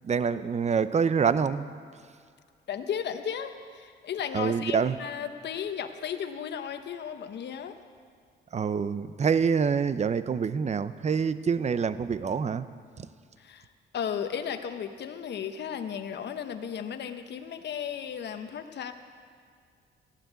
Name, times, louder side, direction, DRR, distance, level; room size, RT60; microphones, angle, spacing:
voice 1, 0.0-1.7 4.3-5.0 8.5-12.7 13.0-13.1, right 6 dB, 35° right, 14 dB, 0.7 m, -26 dB
voice 2, 2.7-7.7 13.4-13.7 13.9-18.9, left 8 dB, 60° left, 7 dB, 1.1 m, -35 dB
15.0 x 11.5 x 8.3 m, 2.1 s
cardioid pair, 90°, 20 cm